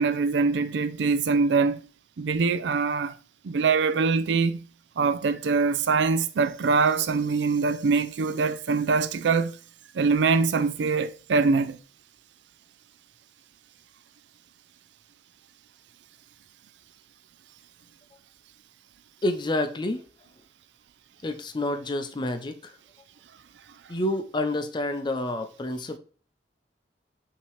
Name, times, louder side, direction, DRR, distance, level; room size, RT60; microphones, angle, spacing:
voice 1, 0.0-1.8 2.2-3.1 3.4-4.6 5.0-9.6 9.9-11.8, right 4 dB, 75° right, 0.4 m, -23 dB
voice 2, 19.2-20.0 21.2-22.7 23.9-26.0, left 1 dB, 25° left, 0.5 m, -28 dB
5.7 x 2.9 x 3.1 m
head